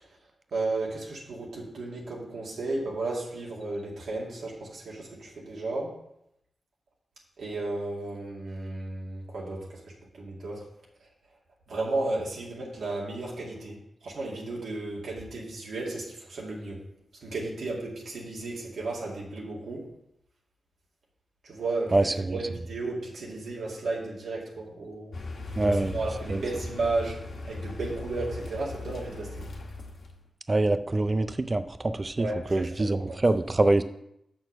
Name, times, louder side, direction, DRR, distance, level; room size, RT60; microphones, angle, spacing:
voice 1, 0.5-5.9 7.4-9.8 10.1-10.6 11.7-16.8 17.2-19.9 21.4-25.2 25.7-27.2 27.5-29.4 32.2-33.2, right 2 dB, 90° right, -4 dB, 2.3 m, -34 dB
voice 2, 21.9-22.4 25.6-26.0 26.3-26.4 30.5-33.8, right 2 dB, 30° right, 11 dB, 0.4 m, -25 dB
Car, 25.1-30.3, left 2 dB, 75° left, 1.4 m, -38 dB
6.8 x 6.3 x 5.3 m, 0.78 s
wide cardioid pair, 90°, 0 cm